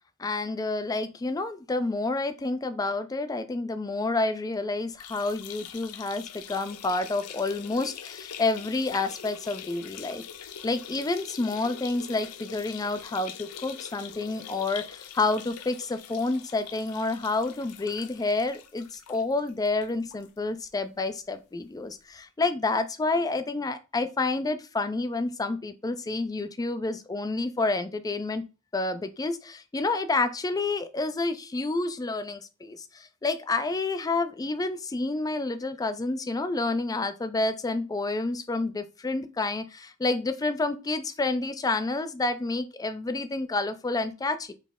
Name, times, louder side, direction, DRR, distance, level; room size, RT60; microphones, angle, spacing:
voice 1, 0.2-10.2 10.6-28.4 28.7-44.5, left 3 dB, 15° left, 11 dB, 0.3 m, -29 dB
sound 1, 4.9-20.3 20.7-20.8 21.1-21.2 22.2-22.3, left 8 dB, 90° left, 0.5 m, -43 dB
4.1 x 3.1 x 3.6 m, 0.31 s
head